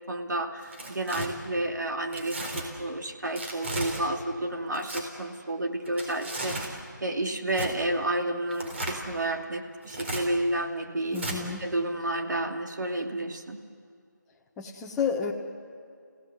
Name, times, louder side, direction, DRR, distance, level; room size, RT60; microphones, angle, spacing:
voice 1, 0.1-11.2 11.6-13.6, right 1 dB, 70° right, 3 dB, 2.7 m, -31 dB
Tearing, 0.6-1.3 2.1-2.6 3.4-4.0 4.7-5.0 5.9-6.7 7.5-7.7 8.5-9.0 9.8-10.2 11.1-11.4, right 1 dB, 40° right, 4.2 m, -35 dB
voice 2, 11.1-11.6 14.6-15.3, left 6 dB, 5° left, -1 dB, 1.1 m, -30 dB
30.0 x 17.0 x 8.2 m, 2.3 s
figure-of-eight pair, 165°, 10 cm